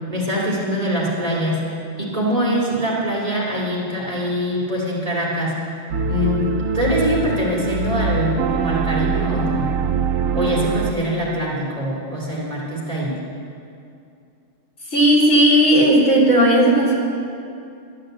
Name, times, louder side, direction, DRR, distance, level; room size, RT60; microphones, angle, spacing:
voice 1, 0.1-1.6 2.0-5.5 6.1-6.4 6.7-9.7 10.3-13.2, equal, 30° right, -6 dB, 2.4 m, -23 dB
sound 1, 5.9-10.9, right 5 dB, 80° right, 1.0 m, -23 dB
voice 2, 14.9-16.9, right 1 dB, 70° left, -3 dB, 2.9 m, -14 dB
12.0 x 7.7 x 7.7 m, 2.6 s
omnidirectional pair, 1.4 m